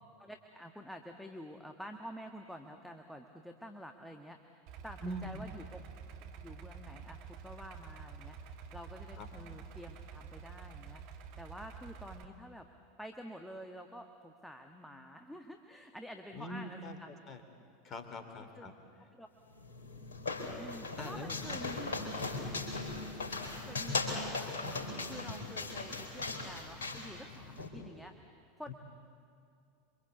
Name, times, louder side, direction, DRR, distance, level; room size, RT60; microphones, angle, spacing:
voice 1, 0.2-4.6 4.8-5.8 6.3-11.0 11.4-12.7 13.0-17.1 18.4-18.7 19.1-19.3 20.6-21.8 22.4-22.5 23.7-24.0 24.3-24.5 25.1-28.1 28.6-28.7, equal, ahead, 4 dB, 1.5 m, -49 dB
Idling, 4.7-12.2, right 6 dB, 50° right, 1.7 m, -49 dB
voice 2, 5.0-5.5 9.2-9.3 16.3-17.4 17.8-18.7 21.0-21.5 23.1-23.7 28.7-28.8, left 1 dB, 30° left, 7 dB, 3.1 m, -44 dB
sound 1, 19.5-27.7, left 3 dB, 70° left, 4.3 m, -38 dB
27.5 x 25.0 x 8.2 m, 2.4 s
figure-of-eight pair, 80°, 0 cm